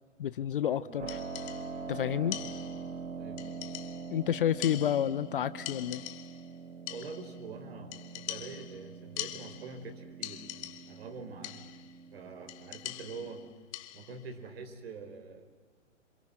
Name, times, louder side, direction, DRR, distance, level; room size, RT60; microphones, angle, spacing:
voice 1, 0.2-1.2 1.9-2.4 4.1-6.0, left 10 dB, 45° left, 16 dB, 0.7 m, -30 dB
Keyboard (musical), 1.0-13.5, right 5 dB, 70° right, 1.8 m, -44 dB
sound 1, 1.1-1.9 2.3-3.0 3.4-4.2 4.6-5.4 5.7-6.5 6.9-7.4 7.9-9.9 10.2-11.1 11.4-11.9 12.5-14.2, left 15 dB, 25° left, 1.2 m, -43 dB
voice 2, 3.1-3.6 6.9-11.7 12.1-13.4 13.9-15.5, right 4 dB, 50° right, 8 dB, 4.3 m, -45 dB
28.5 x 27.0 x 7.8 m, 1.4 s
figure-of-eight pair, 125°, 38 cm